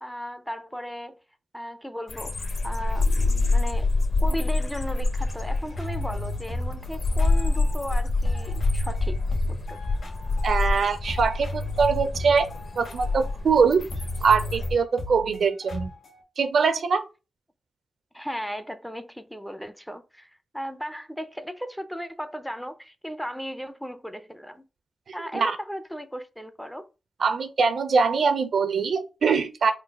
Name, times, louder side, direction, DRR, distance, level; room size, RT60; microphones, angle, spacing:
voice 1, 0.0-1.2 1.5-3.9 4.2-9.2 9.5-9.8 18.1-24.6 25.1-26.9, equal, ahead, 0.3 m, -36 dB
sound 1, 2.1-14.7, left 2 dB, 45° left, 0.7 m, -26 dB
sound 2, 5.7-7.9 8.2-10.8 11.0-16.2, left 1 dB, 70° left, 1.7 m, -35 dB
voice 2, 10.4-12.5 12.8-13.8 14.2-15.9 16.4-17.0 25.3-25.6 27.2-29.7, right 5 dB, 65° right, 0.5 m, -22 dB
3.8 x 2.2 x 4.3 m
wide cardioid pair, 160°, 0 cm